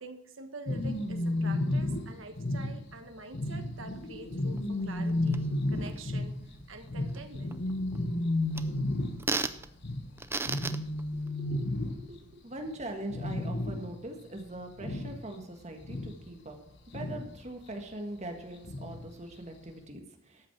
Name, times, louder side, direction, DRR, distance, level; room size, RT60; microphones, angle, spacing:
voice 1, 0.0-6.4 6.7-7.5, right 3 dB, 65° right, 6 dB, 1.3 m, -46 dB
sound 1, 0.7-12.4 12.6-12.8 13.1-14.1 14.4-15.4 15.8-17.4 18.6-19.1 19.5-19.6, left 1 dB, 55° left, 1.2 m, -32 dB
sound 2, 3.9-11.3, right 3 dB, 10° right, 0.4 m, -39 dB
voice 2, 11.2-16.6 16.9-20.5, right 1 dB, 35° right, 4 dB, 1.5 m, -42 dB
13.0 x 6.2 x 5.9 m, 0.78 s
head